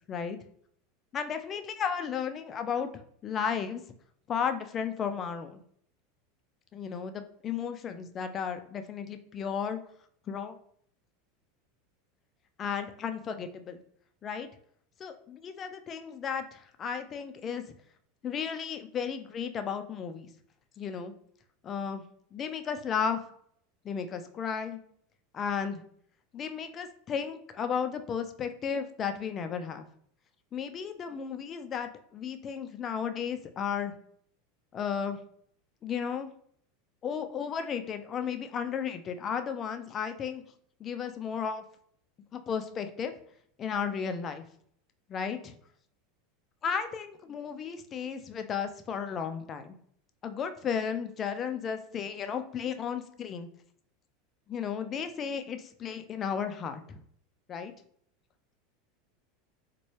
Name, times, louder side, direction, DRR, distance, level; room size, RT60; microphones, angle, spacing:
voice 1, 1.1-3.8 4.3-5.6 6.7-9.8 10.3-10.6 12.6-13.8 14.2-14.5 15.0-17.6 18.2-20.3 20.8-21.1 21.6-22.0 22.3-23.2 23.8-24.8 25.3-25.8 26.3-29.8 30.5-33.9 34.7-35.2 35.8-36.3 37.0-40.4 40.8-41.6 42.3-43.1 43.6-44.4 45.1-45.5 46.6-49.8 50.2-53.5 54.5-57.0 57.5-57.7, left 7 dB, 35° left, 8 dB, 0.4 m, -34 dB
4.0 x 2.2 x 3.1 m, 0.63 s
hypercardioid pair, 100°, 0 cm